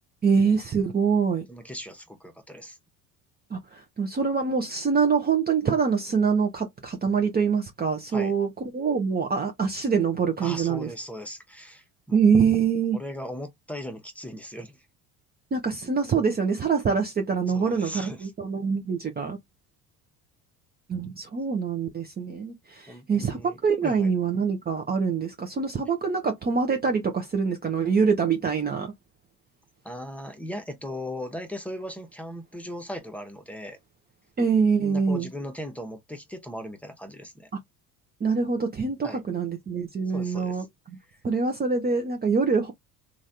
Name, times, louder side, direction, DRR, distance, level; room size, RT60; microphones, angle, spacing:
voice 1, 0.2-1.5 3.5-10.9 12.1-13.0 15.5-19.4 20.9-28.9 34.4-35.3 38.2-40.6 41.2-42.7, right 5 dB, 25° right, 0.7 m, -25 dB
voice 2, 1.5-2.8 8.1-8.3 10.4-12.2 12.9-14.8 17.5-18.3 22.9-24.1 29.8-33.8 34.8-37.5 39.0-39.2 40.1-40.7 41.1-41.2, left 1 dB, 5° left, 1.0 m, -38 dB
3.1 x 2.5 x 2.7 m
supercardioid pair, 85°, 42 cm